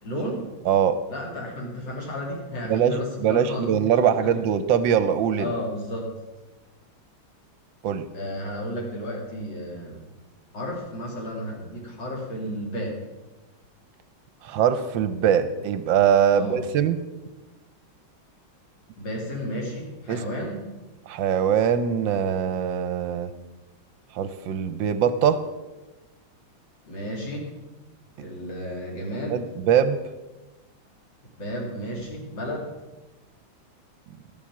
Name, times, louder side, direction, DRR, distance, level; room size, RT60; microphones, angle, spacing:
voice 1, 0.0-0.5 1.1-3.8 4.2-4.4 5.4-6.1 8.1-10.1 10.5-13.0 16.3-16.6 19.0-20.6 26.8-27.5 28.2-29.4 31.4-32.7, equal, 60° left, -2 dB, 3.4 m, -32 dB
voice 2, 2.6-5.5 7.8-8.1 14.4-17.0 20.1-20.2 21.1-23.3 24.1-25.4 29.3-30.0, right 8 dB, 75° right, 11 dB, 1.3 m, -22 dB
13.0 x 7.3 x 7.1 m, 1.1 s
omnidirectional pair, 2.2 m